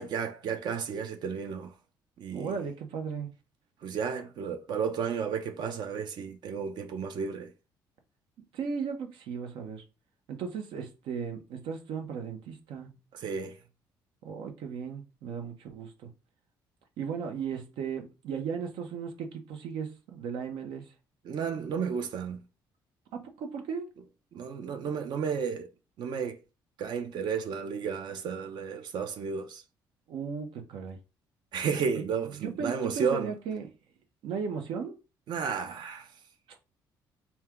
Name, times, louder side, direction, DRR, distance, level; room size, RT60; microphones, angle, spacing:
voice 1, 0.0-1.7 2.2-2.5 3.8-7.5 13.1-13.6 21.2-22.4 24.3-25.7 26.0-26.4 26.8-29.6 31.5-33.3 35.3-36.1, right 6 dB, 60° right, 0.7 m, -32 dB
voice 2, 2.3-3.3 8.5-9.8 10.3-13.1 14.2-16.1 17.0-20.9 23.1-23.9 30.1-31.0 32.4-33.7 34.2-35.0, right 6 dB, 80° right, 1.0 m, -36 dB
4.4 x 2.3 x 3.6 m
cardioid pair, 110°, 8 cm